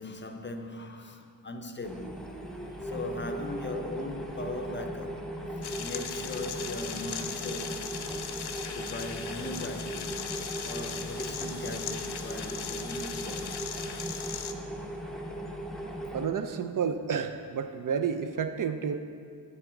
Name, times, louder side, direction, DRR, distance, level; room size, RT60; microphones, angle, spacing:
voice 1, 0.0-2.2 2.8-5.3 5.8-8.0 8.7-10.2 10.6-13.6 14.1-14.3, left 2 dB, 30° left, 0.6 m, -39 dB
sound 1, 1.8-16.3, right 1 dB, ahead, 0.8 m, -38 dB
sound 2, 5.6-14.5, left 8 dB, 70° left, 0.6 m, -39 dB
voice 2, 16.1-19.0, right 7 dB, 50° right, 0.5 m, -30 dB
8.0 x 7.4 x 3.7 m
cardioid pair, 70°, 41 cm